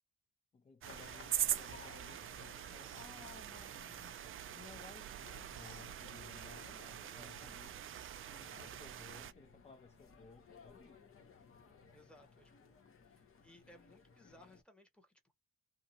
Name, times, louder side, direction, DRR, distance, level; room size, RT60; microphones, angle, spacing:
voice 1, 0.5-4.2 4.5-7.8 8.3-11.1, left 5 dB, 20° left, 0.5 m, -59 dB
sound 1, 0.8-14.6, left 5 dB, 45° left, 1.0 m, -60 dB
sound 2, 0.8-9.3, right 11 dB, 45° right, 0.4 m, -43 dB
voice 2, 7.1-7.6 11.9-12.8 13.0-15.3, left 1 dB, 5° left, 1.2 m, -63 dB
2.7 x 2.3 x 2.8 m
cardioid pair, 90°, 30 cm